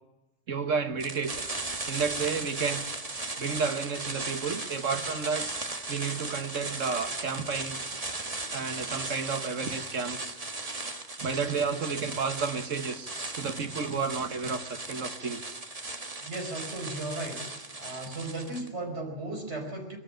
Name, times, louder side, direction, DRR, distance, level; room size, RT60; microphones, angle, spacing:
voice 1, 0.5-1.5 1.9-2.9 3.4-5.5 5.9-8.0 8.5-10.4 11.2-15.6, right 5 dB, 80° right, 9 dB, 1.8 m, -31 dB
sound 1, 1.0-18.7, right 2 dB, 30° right, 1.6 m, -37 dB
voice 2, 16.2-17.5 17.8-20.0, right 2 dB, 60° right, 2 dB, 5.6 m, -36 dB
22.5 x 13.5 x 9.0 m, 0.98 s
omnidirectional pair, 1.3 m